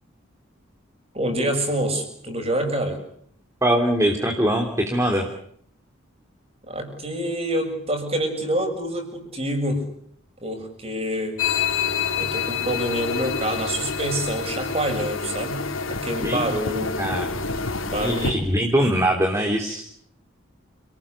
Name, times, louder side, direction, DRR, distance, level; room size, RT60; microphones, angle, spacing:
voice 1, 1.1-3.0 6.7-9.8 10.4-11.4 12.2-17.0 17.8-18.4, right 1 dB, 30° right, 5 dB, 7.3 m, -26 dB
voice 2, 3.6-5.2 16.2-16.5 17.0-17.3 17.9-19.8, right 1 dB, 15° right, 2 dB, 3.3 m, -22 dB
sound 1, 11.4-18.3, left 5 dB, 75° left, 3.7 m, -27 dB
29.5 x 19.5 x 8.5 m, 0.65 s
head